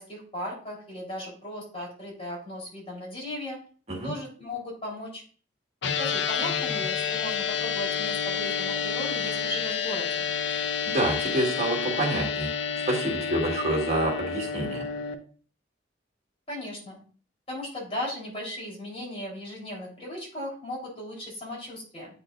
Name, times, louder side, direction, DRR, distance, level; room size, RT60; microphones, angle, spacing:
voice 1, 0.0-3.6 4.0-5.2 6.0-10.3 16.5-17.0 17.5-22.1, left 1 dB, 35° left, -3 dB, 3.9 m, -36 dB
sound 1, 5.8-15.1, left 7 dB, 90° left, 0.8 m, -29 dB
voice 2, 10.5-12.5 12.9-14.9, right 1 dB, 40° right, -2 dB, 2.0 m, -28 dB
8.7 x 6.5 x 2.6 m, 0.42 s
head